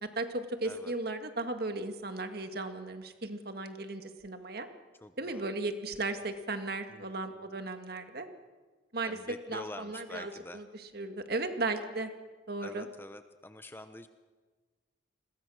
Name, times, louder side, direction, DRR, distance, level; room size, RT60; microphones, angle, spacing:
voice 1, 0.0-4.7 5.2-8.3 8.9-12.1 12.5-12.8, right 2 dB, 50° right, 7 dB, 1.9 m, -36 dB
voice 2, 5.0-5.5 6.9-7.1 7.5-7.6 9.0-10.6 12.6-14.1, left 1 dB, 10° left, 10 dB, 0.7 m, -46 dB
29.5 x 21.5 x 6.4 m, 1.4 s
head